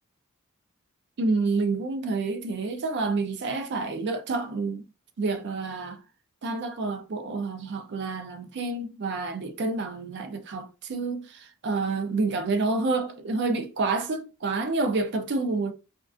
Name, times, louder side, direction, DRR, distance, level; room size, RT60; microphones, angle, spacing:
voice 1, 1.2-4.8 5.2-6.0 6.4-15.7, right 3 dB, 50° right, 0.4 m, -28 dB
2.3 x 2.2 x 2.4 m
head